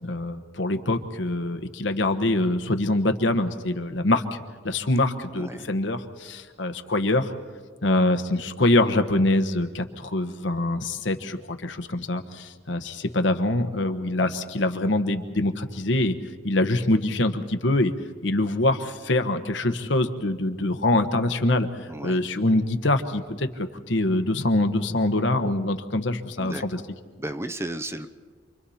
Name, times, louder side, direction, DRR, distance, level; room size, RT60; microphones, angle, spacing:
voice 1, 0.0-7.3 7.8-16.2 16.4-17.9 18.2-21.7 22.0-26.8, left 2 dB, 70° left, 8 dB, 1.2 m, -24 dB
voice 2, 5.3-5.7 21.9-22.2 26.4-26.6 27.2-28.1, right 1 dB, 15° right, 10 dB, 0.7 m, -34 dB
28.5 x 24.0 x 4.3 m, 1.5 s
head